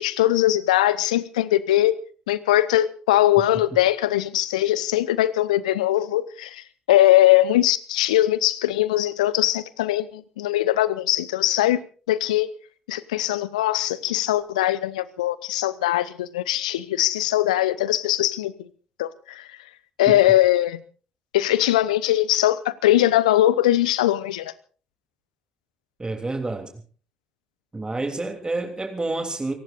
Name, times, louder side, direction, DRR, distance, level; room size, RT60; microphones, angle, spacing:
voice 1, 0.0-1.9 2.3-11.8 12.1-12.5 12.9-18.7 19.0-19.4 20.0-20.8 21.3-24.5, left 14 dB, 80° left, 18 dB, 0.8 m, -21 dB
voice 2, 26.0-26.7 27.7-29.6, right 2 dB, 20° right, 5 dB, 3.2 m, -28 dB
29.0 x 19.0 x 2.6 m, 0.39 s
figure-of-eight pair, 45°, 4 cm